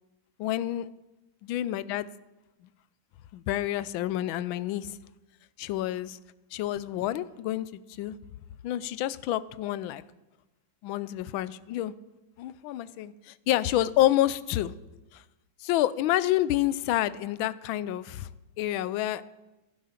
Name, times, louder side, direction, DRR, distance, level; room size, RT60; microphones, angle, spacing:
voice 1, 0.4-0.9 1.5-2.1 3.3-5.0 5.6-6.2 6.5-8.2 8.6-10.0 10.8-11.9 12.4-14.7 15.1-15.2 15.6-18.3 18.6-19.2, left 13 dB, 80° left, 17 dB, 1.3 m, -28 dB
12.0 x 11.5 x 5.8 m, 1.0 s
omnidirectional pair, 2.2 m